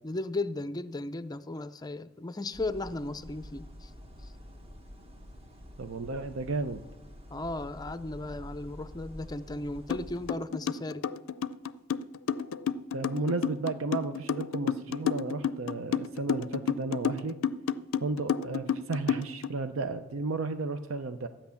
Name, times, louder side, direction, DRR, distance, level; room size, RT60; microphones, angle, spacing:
voice 1, 0.0-3.9 4.2-4.3 7.3-11.1, left 2 dB, 20° left, 14 dB, 0.5 m, -36 dB
sound 1, 2.5-10.3, equal, 30° right, 1.4 m, -47 dB
voice 2, 5.8-6.8 12.9-17.3 18.0-21.3, right 3 dB, 80° right, 9 dB, 0.6 m, -33 dB
sound 2, 9.9-10.0 10.3-19.5, left 7 dB, 90° left, 0.4 m, -30 dB
13.0 x 8.9 x 7.0 m, 1.0 s
head